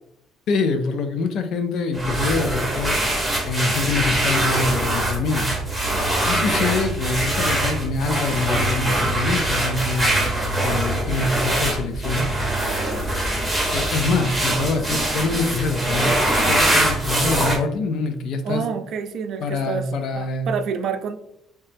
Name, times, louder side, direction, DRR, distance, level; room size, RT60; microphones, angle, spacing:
voice 1, 0.5-3.0 3.4-5.5 6.2-10.1 10.6-12.3 13.7-18.6 19.4-20.5, left 3 dB, 65° left, 8 dB, 0.4 m, -25 dB
sound 1, 1.9-17.6, right 1 dB, ahead, 0.8 m, -23 dB
voice 2, 18.4-21.2, right 6 dB, 60° right, 8 dB, 0.3 m, -28 dB
3.2 x 2.8 x 3.4 m, 0.80 s
cardioid pair, 125°, 0 cm